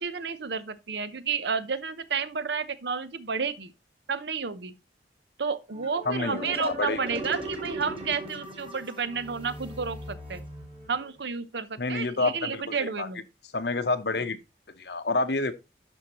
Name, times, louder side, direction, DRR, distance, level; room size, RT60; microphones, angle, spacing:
voice 1, 0.0-3.7 4.1-4.7 5.4-10.4 10.9-13.2, right 5 dB, 75° right, 0.8 m, -31 dB
sound 1, 5.7-11.1, right 1 dB, 30° right, 2.0 m, -38 dB
voice 2, 6.1-7.0 11.8-13.1 13.5-14.4 14.8-15.5, left 3 dB, 70° left, 0.9 m, -28 dB
9.9 x 6.1 x 3.0 m
head